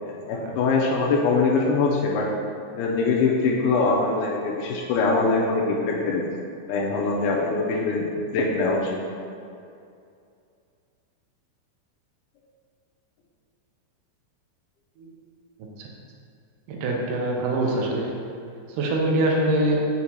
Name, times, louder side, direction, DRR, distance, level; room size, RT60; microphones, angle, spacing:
voice 1, 0.0-2.3 2.7-6.2 6.7-8.9, left 3 dB, 90° left, -2 dB, 2.6 m, -23 dB
voice 2, 16.7-18.2 18.8-19.9, right 1 dB, 80° right, -1 dB, 2.0 m, -23 dB
6.2 x 5.9 x 2.8 m, 2.5 s
omnidirectional pair, 4.4 m